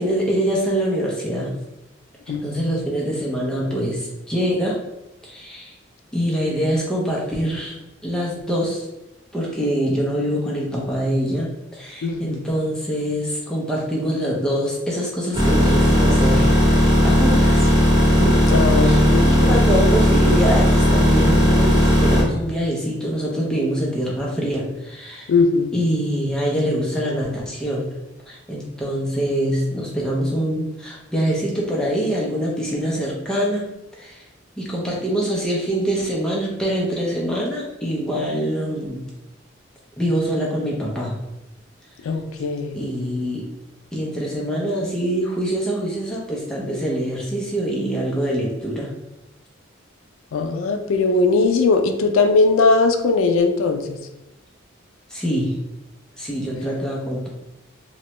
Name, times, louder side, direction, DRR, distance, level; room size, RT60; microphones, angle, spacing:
voice 1, 0.0-1.5 2.3-4.8 5.2-5.8 6.1-7.8 8.0-8.9 9.3-17.7 18.2-18.4 18.8-25.3 25.7-27.9 28.3-33.7 34.0-34.2 34.6-39.0 40.0-41.1 42.7-43.5 43.9-48.9 55.1-55.5 56.2-57.3, equal, 5° left, -4 dB, 0.5 m, -24 dB
voice 2, 2.3-2.6 12.0-12.4 18.5-19.8 25.3-25.7 42.0-42.8 50.3-54.0, left 3 dB, 90° left, 6 dB, 0.3 m, -19 dB
sound 1, 15.3-22.2, equal, 20° right, 1.0 m, -16 dB
3.0 x 2.2 x 2.9 m, 0.95 s
head